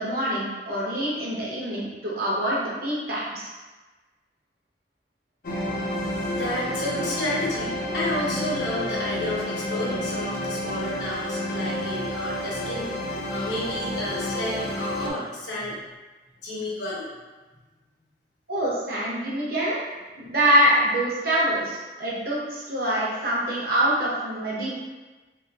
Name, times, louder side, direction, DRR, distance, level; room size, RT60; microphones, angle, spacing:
voice 1, 0.0-3.5 18.5-19.8 20.2-24.7, right 1 dB, 55° right, -6 dB, 0.9 m, -25 dB
sound 1, 5.4-15.1, left 1 dB, 50° left, 0.5 m, -30 dB
voice 2, 6.2-15.8 16.4-17.1, left 1 dB, 75° left, -6 dB, 1.0 m, -31 dB
2.9 x 2.9 x 2.4 m, 1.2 s
head